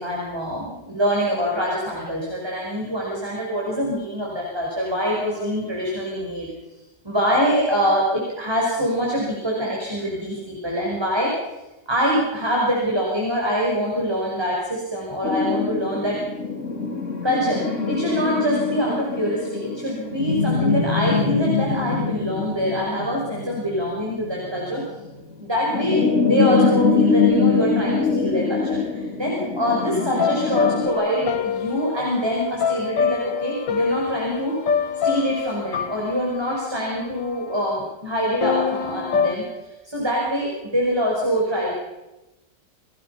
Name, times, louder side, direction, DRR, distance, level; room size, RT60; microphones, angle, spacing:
voice 1, 0.0-6.5 7.0-11.3 11.9-16.2 17.2-24.8 25.4-26.0 26.3-34.5 35.0-39.4 39.8-41.7, equal, 15° right, -3 dB, 5.8 m, -24 dB
sound 1, 15.2-30.9, left 5 dB, 45° left, 3.0 m, -24 dB
sound 2, 29.6-37.6 38.4-39.3, left 7 dB, 80° left, 2.0 m, -26 dB
30.0 x 19.0 x 5.9 m, 0.99 s
omnidirectional pair, 1.9 m